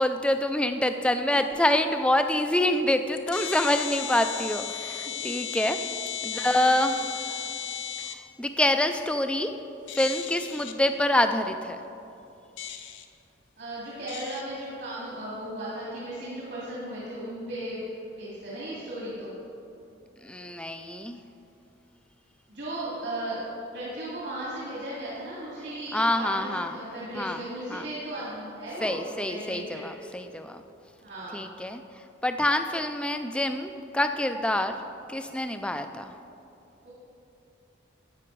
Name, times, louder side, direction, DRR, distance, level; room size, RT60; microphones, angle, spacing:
voice 1, 0.0-5.8 6.2-7.1 8.0-9.5 9.9-11.8 20.2-21.2 25.9-26.8 27.1-27.4 27.7-27.9 28.8-30.6 31.3-34.8 35.1-36.2, left 1 dB, 5° left, 8 dB, 0.4 m, -26 dB
sound 1, 1.5-1.6 2.5-2.6 3.1-8.1 9.9-10.7 12.6-13.0 14.1-14.4, left 8 dB, 75° left, 0.7 m, -35 dB
voice 2, 6.2-6.8 7.2-7.5 10.4-10.5 13.6-17.9 18.2-19.3 22.5-23.5 23.7-29.0 29.3-29.9 31.0-31.5 36.8-36.9, right 1 dB, 60° right, -7 dB, 2.4 m, -36 dB
12.0 x 8.8 x 4.6 m, 2.7 s
head